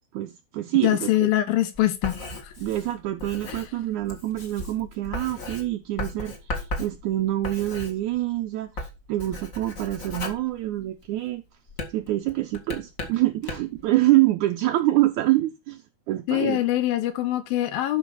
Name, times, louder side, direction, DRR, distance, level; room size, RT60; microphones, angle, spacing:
voice 1, 0.1-1.3 2.6-11.4 11.9-15.8 16.1-16.6, right 16 dB, 75° right, 1.8 m, -26 dB
voice 2, 0.8-2.5 3.5-3.6 16.3-18.0, left 14 dB, 75° left, 2.9 m, -24 dB
Writing, 1.7-8.4 8.7-11.2 11.7-13.8, left 2 dB, 40° left, 1.2 m, -36 dB
12.5 x 5.4 x 4.3 m
omnidirectional pair, 4.4 m